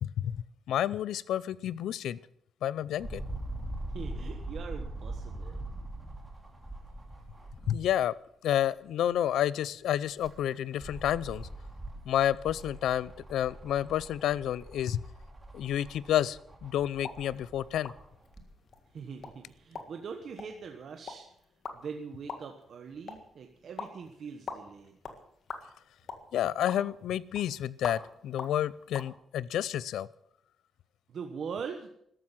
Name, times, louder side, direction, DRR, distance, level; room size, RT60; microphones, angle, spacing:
voice 1, 0.0-2.2 2.6-3.2 7.7-8.2 8.4-11.5 12.1-15.0 15.5-17.9 26.3-30.1, left 11 dB, 85° left, 20 dB, 0.5 m, -30 dB
sound 1, 3.0-8.0 8.5-8.6 9.9-18.5 19.2-19.3, right 1 dB, 10° right, 2.6 m, -42 dB
voice 2, 3.9-5.6 18.9-21.3 21.7-25.0 31.1-31.9, right 6 dB, 45° right, 5 dB, 1.2 m, -42 dB
sound 2, 16.9-29.1, left 5 dB, 45° left, 1.8 m, -46 dB
13.5 x 12.5 x 7.4 m, 0.71 s
wide cardioid pair, 175°, 0 cm